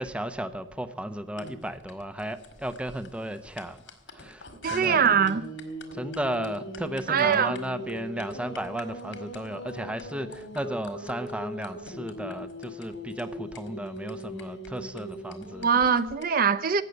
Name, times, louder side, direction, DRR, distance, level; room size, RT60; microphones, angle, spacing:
voice 1, 0.0-5.0 5.9-15.7, right 1 dB, 5° right, 0.8 m, -34 dB
sound 1, 1.4-16.2, equal, 80° left, 2.1 m, -40 dB
voice 2, 4.6-5.4 7.1-7.5 15.6-16.8, right 7 dB, 50° right, 0.5 m, -22 dB
16.5 x 6.6 x 9.5 m
head